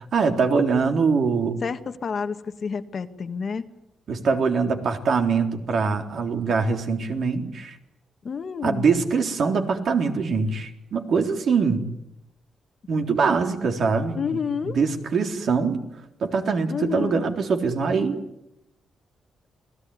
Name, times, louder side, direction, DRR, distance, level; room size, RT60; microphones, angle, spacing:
voice 1, 0.1-1.6 4.1-7.8 8.6-11.8 12.9-15.8 16.2-18.2, right 5 dB, 55° right, 4 dB, 3.7 m, -23 dB
voice 2, 1.6-3.7 8.2-8.9 14.1-14.8 16.7-17.3, left 6 dB, 40° left, 8 dB, 1.6 m, -29 dB
29.0 x 20.0 x 9.7 m, 0.87 s
cardioid pair, 135°, 0 cm